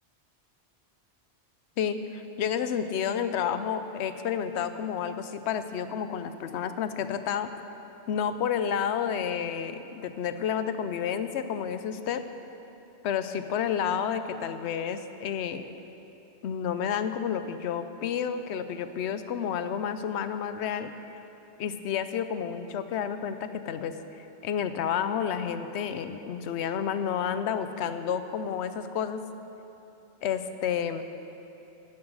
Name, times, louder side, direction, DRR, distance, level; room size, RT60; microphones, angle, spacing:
voice 1, 1.8-7.5 8.1-12.2 13.0-15.6 16.4-20.9 21.6-29.2 30.2-31.0, left 8 dB, 75° left, 10 dB, 0.9 m, -30 dB
11.0 x 7.2 x 6.2 m, 3.0 s
omnidirectional pair, 1.1 m